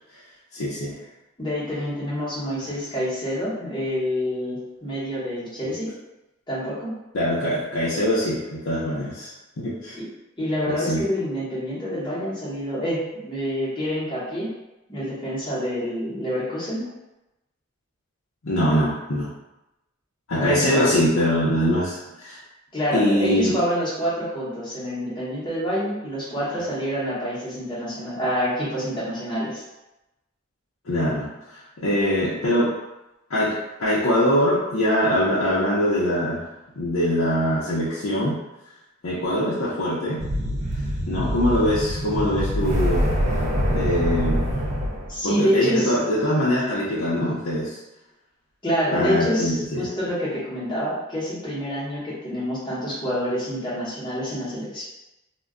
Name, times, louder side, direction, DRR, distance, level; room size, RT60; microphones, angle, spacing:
voice 1, 0.5-0.9 7.1-9.3 9.6-10.0 10.7-11.0 18.4-19.3 20.3-22.4 22.9-23.6 30.9-31.3 31.8-32.7 33.3-36.5 36.8-38.4 39.0-40.2 41.1-43.1 43.7-44.4 45.2-47.8 48.9-49.8, equal, 85° left, -9 dB, 0.6 m, -23 dB
voice 2, 1.4-5.9 6.5-6.9 9.9-10.1 10.4-14.5 14.9-16.9 20.3-20.9 22.7-29.6 45.1-45.9 48.6-49.5 49.8-54.8, equal, 20° left, -9 dB, 0.8 m, -27 dB
sound 1, 40.2-45.2, equal, 35° right, 0.3 m, -24 dB
2.2 x 2.2 x 3.6 m, 0.97 s
head